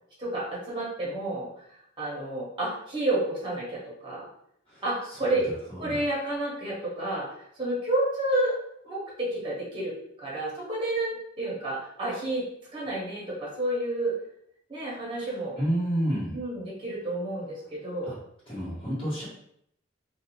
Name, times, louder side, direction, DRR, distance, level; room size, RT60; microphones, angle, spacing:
voice 1, 0.2-4.3 4.8-7.3 7.5-8.6 8.8-12.4 12.7-14.1 14.7-15.6 16.3-18.2, right 1 dB, 25° right, -6 dB, 0.9 m, -30 dB
voice 2, 15.6-16.4 18.0-18.1 18.5-19.3, right 1 dB, 25° left, -14 dB, 1.3 m, -29 dB
2.5 x 2.3 x 2.9 m, 0.72 s
head